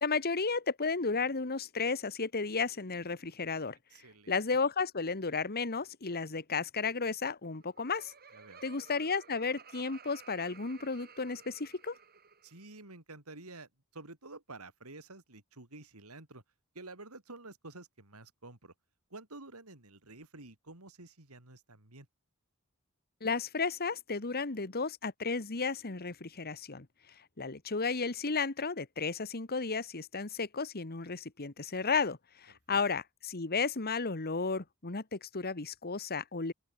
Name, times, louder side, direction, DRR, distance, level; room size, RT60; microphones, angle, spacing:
voice 1, 0.0-3.8 4.3-8.1 8.6-12.0 23.2-26.9 27.4-36.5, left 4 dB, 45° left, 1.5 m, -33 dB
voice 2, 3.9-4.4 8.3-8.6 12.4-16.4 16.7-18.7 19.1-22.1 32.7-32.8, right 2 dB, 90° right, 4.3 m, -50 dB
Laughter, 7.5-12.7, right 6 dB, 45° right, 7.6 m, -55 dB
open air
head